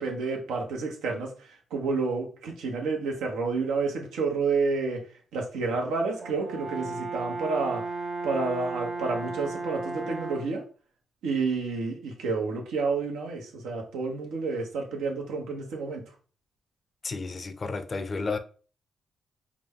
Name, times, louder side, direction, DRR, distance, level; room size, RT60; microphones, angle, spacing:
voice 1, 0.0-5.0 5.3-7.8 8.2-10.6 11.2-16.0, right 4 dB, 85° right, 1.0 m, -30 dB
Brass instrument, 6.2-10.6, right 3 dB, 55° right, 0.6 m, -35 dB
voice 2, 17.0-18.4, left 4 dB, 45° left, 0.6 m, -32 dB
4.9 x 2.2 x 3.5 m
supercardioid pair, 55°, 0 cm